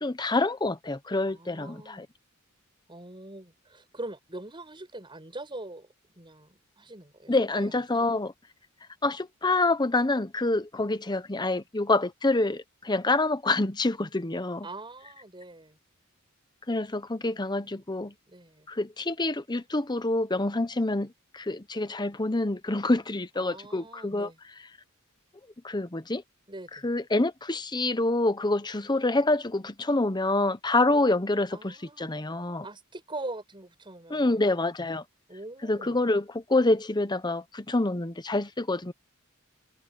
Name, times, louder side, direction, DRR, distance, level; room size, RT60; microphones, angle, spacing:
voice 1, 0.0-2.1 7.3-8.3 9.0-14.7 16.7-18.1 18.7-24.3 25.6-26.2 26.8-32.7 34.1-35.0 35.6-38.9, left 2 dB, 20° left, 0.9 m, -27 dB
voice 2, 1.3-2.0 2.9-5.9 6.1-8.0 14.6-15.8 17.2-17.8 18.3-18.7 23.4-24.4 26.5-26.9 31.5-32.1 32.6-34.6 35.3-36.0, right 2 dB, 25° right, 6.8 m, -43 dB
head